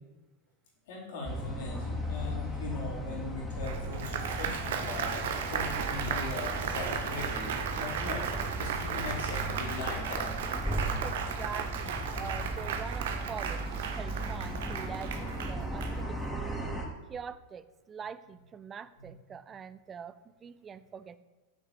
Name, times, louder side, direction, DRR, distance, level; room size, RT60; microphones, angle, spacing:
voice 1, 0.9-5.2 5.5-8.3 8.5-10.4 19.0-19.1, left 3 dB, 55° left, -4 dB, 4.4 m, -40 dB
sound 1, 1.2-16.8, right 1 dB, ahead, 2.7 m, -37 dB
Applause, 3.6-16.4, right 7 dB, 55° right, 1.3 m, -35 dB
voice 2, 11.0-13.6 14.0-16.6 17.1-21.2, right 6 dB, 20° right, 15 dB, 0.6 m, -44 dB
9.8 x 7.3 x 8.0 m, 1.2 s
figure-of-eight pair, 90°, 0 cm